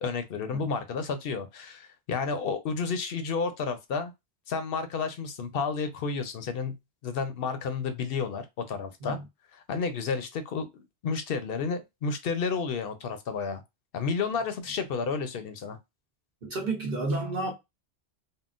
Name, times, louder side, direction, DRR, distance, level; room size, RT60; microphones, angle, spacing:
voice 1, 0.0-4.1 4.5-6.7 7.0-9.2 9.5-13.6 13.9-15.8, left 5 dB, 65° left, 0.8 m, -31 dB
voice 2, 16.4-17.5, right 2 dB, 55° right, 1.1 m, -31 dB
3.7 x 2.1 x 2.4 m
omnidirectional pair, 1.1 m